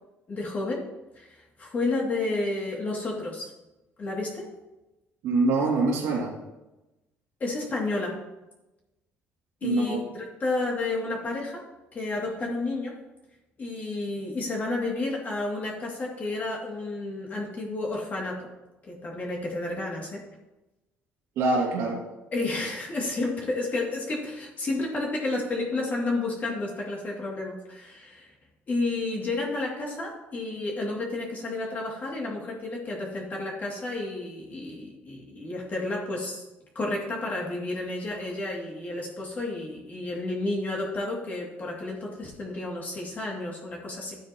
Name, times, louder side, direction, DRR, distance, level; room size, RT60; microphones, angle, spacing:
voice 1, 0.3-0.8 1.1-3.5 4.0-4.5 7.4-8.2 9.6-11.6 11.9-13.0 13.6-18.5 18.8-20.2 22.3-28.3 28.7-36.4 36.7-44.2, left 2 dB, 35° left, -2 dB, 2.5 m, -31 dB
voice 2, 5.2-6.3 9.6-10.0 21.4-22.0, right 3 dB, 80° right, -3 dB, 2.5 m, -24 dB
13.0 x 9.1 x 3.0 m, 1.0 s
cardioid pair, 125°, 5 cm